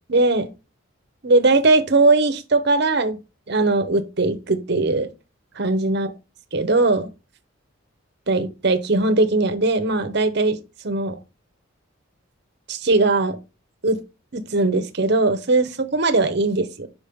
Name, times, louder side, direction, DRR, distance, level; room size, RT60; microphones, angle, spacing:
voice 1, 0.1-0.5 1.2-3.2 3.5-5.1 5.6-6.1 6.5-7.1 8.3-11.2 12.7-13.4 13.8-14.0 14.3-16.9, right 2 dB, 50° right, 0.8 m, -20 dB
5.2 x 5.0 x 5.3 m
head